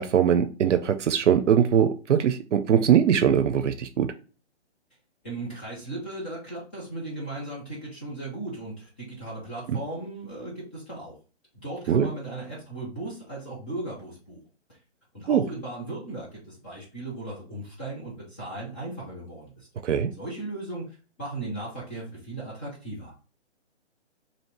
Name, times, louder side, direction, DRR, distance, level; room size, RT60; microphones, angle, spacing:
voice 1, 0.0-4.1 11.9-12.1 15.3-15.4 19.8-20.1, right 8 dB, 85° right, 9 dB, 0.6 m, -21 dB
voice 2, 5.2-11.2 11.5-14.4 14.7-14.8 15.1-19.7 20.2-20.8 21.2-23.1, right 2 dB, 10° left, -6 dB, 0.4 m, -37 dB
2.9 x 2.8 x 4.3 m, 0.36 s
hypercardioid pair, 145°, 35 cm